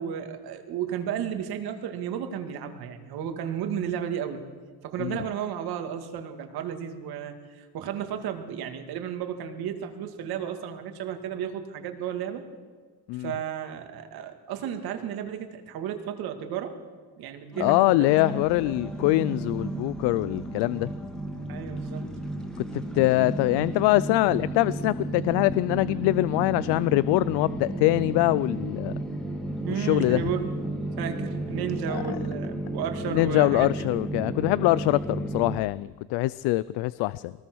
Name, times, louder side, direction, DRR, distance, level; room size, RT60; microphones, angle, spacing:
voice 1, 0.0-4.5 4.8-12.4 13.2-16.8 17.2-18.4 21.5-22.1 29.6-30.5 31.0-33.7, right 8 dB, 65° right, 6 dB, 2.4 m, -33 dB
sound 1, 17.5-35.6, right 1 dB, ahead, 2.1 m, -33 dB
voice 2, 17.6-20.9 22.6-28.9 29.7-30.2 31.9-32.0 33.1-37.3, left 19 dB, 80° left, 18 dB, 0.5 m, -24 dB
23.0 x 19.5 x 6.2 m, 1.5 s
cardioid pair, 145°, 40 cm